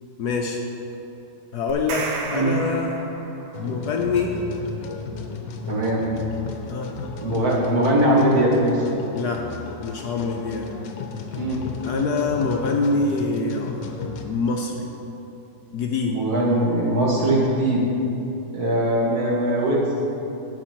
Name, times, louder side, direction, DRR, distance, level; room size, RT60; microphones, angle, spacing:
voice 1, 0.2-0.6 1.5-3.0 3.6-4.4 6.7-6.9 9.1-9.5 9.8-10.7 11.8-14.9 15.7-16.2, left 4 dB, 65° left, 1 dB, 1.1 m, -25 dB
sound 1, 1.7-3.7, right 4 dB, 90° right, 1.6 m, -33 dB
sound 2, 3.5-14.3, left 5 dB, 85° left, 1.5 m, -35 dB
voice 2, 5.7-6.0 7.2-8.8 11.3-11.6 16.0-17.8 18.5-20.0, right 1 dB, 50° right, -4 dB, 2.2 m, -21 dB
10.5 x 8.0 x 4.5 m, 2.9 s
omnidirectional pair, 2.1 m